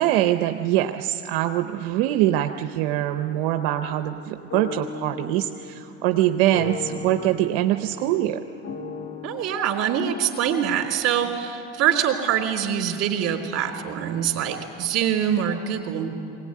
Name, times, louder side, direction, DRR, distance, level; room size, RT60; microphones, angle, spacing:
voice 1, 0.0-8.4, right 13 dB, 90° right, 7 dB, 0.8 m, -23 dB
sound 1, 3.1-9.5, left 5 dB, 55° left, 2.9 m, -38 dB
voice 2, 9.2-16.1, right 9 dB, 55° right, 3 dB, 3.2 m, -24 dB
22.0 x 18.5 x 9.4 m, 2.8 s
supercardioid pair, 100°, 29 cm